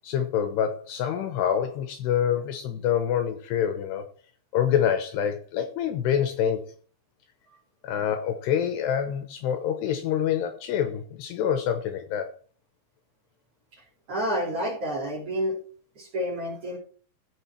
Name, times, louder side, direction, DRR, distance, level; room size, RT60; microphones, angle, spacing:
voice 1, 0.0-4.1 4.5-6.7 7.8-12.3, left 9 dB, 75° left, 8 dB, 2.7 m, -26 dB
voice 2, 14.1-15.6 16.0-16.8, equal, 35° right, -2 dB, 3.7 m, -29 dB
15.5 x 6.3 x 4.5 m, 0.41 s
omnidirectional pair, 5.4 m